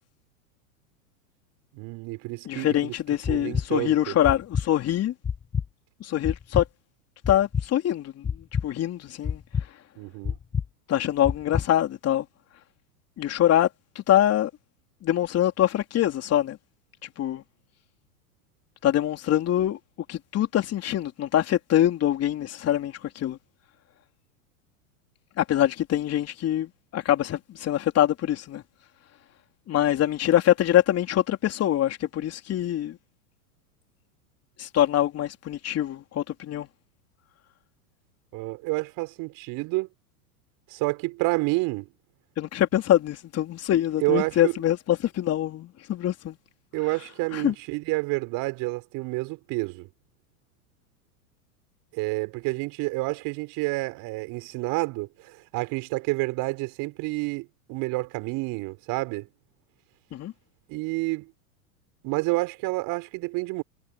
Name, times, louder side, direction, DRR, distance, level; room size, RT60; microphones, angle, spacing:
voice 1, 1.7-2.9 3.3-4.1 10.0-10.4 38.3-39.9 40.7-41.9 44.0-44.5 46.7-49.9 51.9-59.3 60.7-61.3 62.0-63.6, right 24 dB, 50° right, 5.3 m, -29 dB
voice 2, 2.5-5.1 6.0-6.6 7.3-9.4 10.9-12.3 13.2-13.7 14.0-14.5 15.0-16.6 17.2-17.4 18.8-19.8 20.1-23.4 25.4-28.6 29.7-33.0 34.6-36.7 42.4-46.4 47.3-47.5 60.1-60.3, left 12 dB, 35° left, 3.9 m, -24 dB
sound 1, 3.2-3.7 4.2-4.7 5.2-5.7 6.2-6.7 7.2-7.7 8.2-8.7 9.2-9.7 10.2-10.7 11.2-11.7, left 6 dB, 15° left, 1.2 m, -27 dB
hypercardioid pair, 105°, 45 cm